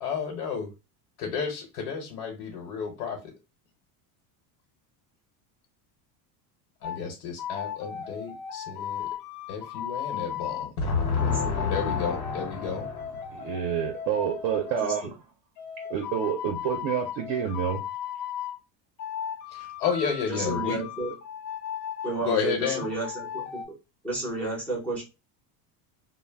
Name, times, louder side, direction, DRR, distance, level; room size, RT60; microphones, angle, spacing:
voice 1, 0.0-0.7 1.2-3.2 6.8-9.1 9.5-13.6 19.5-20.8 22.2-22.8, left 6 dB, 90° left, 0 dB, 0.9 m, -30 dB
sound 1, 6.8-7.0 7.4-10.7 11.2-14.9 15.6-18.6 19.0-22.2 22.6-23.6, left 8 dB, 60° left, 0.6 m, -36 dB
voice 2, 11.2-11.9 14.8-14.9 20.3-21.1 22.0-23.6 24.0-25.0, right 2 dB, 5° left, -4 dB, 0.4 m, -32 dB
voice 3, 13.3-15.1 15.9-17.8, right 8 dB, 50° right, 3 dB, 0.5 m, -28 dB
2.2 x 2.0 x 3.3 m, 0.27 s
cardioid pair, 170°, 45 cm